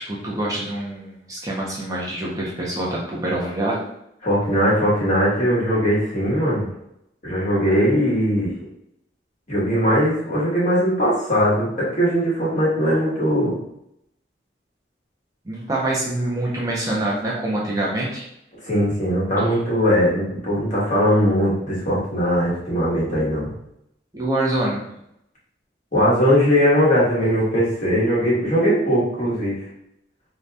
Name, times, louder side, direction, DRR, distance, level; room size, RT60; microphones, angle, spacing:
voice 1, 0.0-3.8 15.5-18.2 24.1-24.8, right 1 dB, 20° right, -5 dB, 0.5 m, -25 dB
voice 2, 4.2-6.7 7.2-8.5 9.5-13.5 18.7-23.5 25.9-29.6, equal, 45° left, -6 dB, 1.2 m, -20 dB
2.7 x 2.3 x 3.3 m, 0.78 s
head